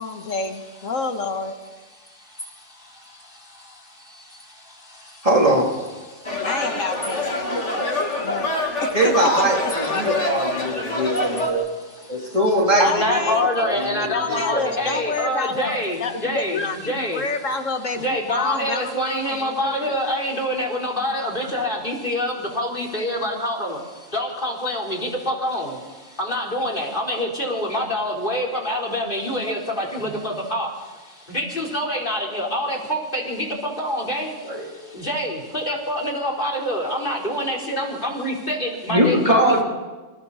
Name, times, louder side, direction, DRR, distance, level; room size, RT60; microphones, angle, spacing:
voice 1, 0.0-1.5 6.4-9.5 12.8-20.0, left 4 dB, 85° left, 6 dB, 1.9 m, -29 dB
voice 2, 2.0-5.3 6.1-6.5 7.4-8.0 10.9-11.0 12.1-12.4 12.8-17.2 18.0-39.6, equal, 40° left, 0 dB, 4.4 m, -27 dB
voice 3, 5.2-5.6 8.9-11.7 12.1-15.0 30.0-30.1 34.4-34.7 38.9-39.6, right 1 dB, 25° right, -2 dB, 3.5 m, -21 dB
sound 1, 6.2-11.5, left 2 dB, 65° left, 3.2 m, -25 dB
28.5 x 27.0 x 4.2 m, 1.3 s
omnidirectional pair, 1.3 m